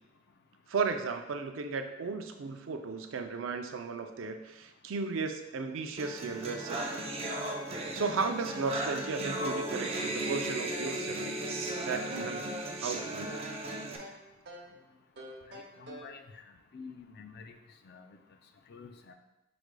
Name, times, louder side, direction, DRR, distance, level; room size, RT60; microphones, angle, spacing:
voice 1, 0.7-6.9 7.8-11.4 11.8-12.4 12.8-13.4, right 4 dB, 80° right, 6 dB, 0.4 m, -35 dB
sound 1, 6.0-14.0, right 1 dB, 30° right, 0.5 m, -36 dB
sound 2, 9.5-11.0 11.4-12.4 13.3-14.7 15.2-16.2, right 1 dB, 55° right, 0.8 m, -47 dB
voice 2, 15.5-16.2 16.7-17.6 17.9-18.1 18.7-19.1, left 5 dB, 55° left, 6 dB, 0.4 m, -48 dB
5.0 x 4.7 x 2.2 m, 0.97 s
head